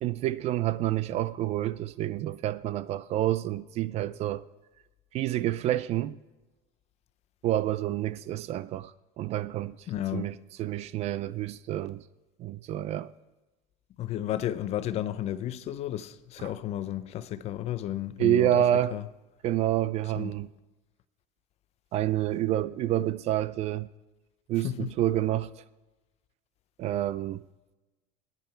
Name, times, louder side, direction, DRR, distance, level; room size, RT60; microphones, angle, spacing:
voice 1, 0.0-4.4 5.1-6.2 7.4-9.8 10.1-12.0 12.4-13.1 16.4-16.5 18.2-19.0 19.4-20.5 21.9-23.9 24.5-25.5 26.8-27.4, right 13 dB, 40° right, 0.4 m, -28 dB
voice 2, 9.9-10.3 14.0-18.6 18.9-19.0 20.2-20.4 24.6-24.9, left 12 dB, 40° left, 0.6 m, -33 dB
20.5 x 9.8 x 4.5 m
cardioid pair, 145°, 16 cm